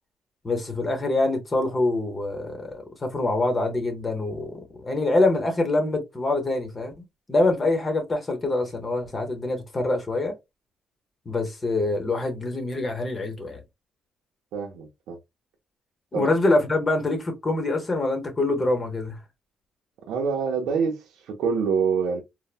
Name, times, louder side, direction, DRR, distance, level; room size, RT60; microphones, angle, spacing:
voice 1, 0.4-10.3 11.3-13.6 16.1-19.2, left 2 dB, 30° left, 0.8 m, -25 dB
voice 2, 14.5-15.2 16.1-16.3 20.1-22.2, right 5 dB, 85° right, 0.6 m, -26 dB
3.2 x 2.0 x 2.3 m
cardioid pair, 90°, 0 cm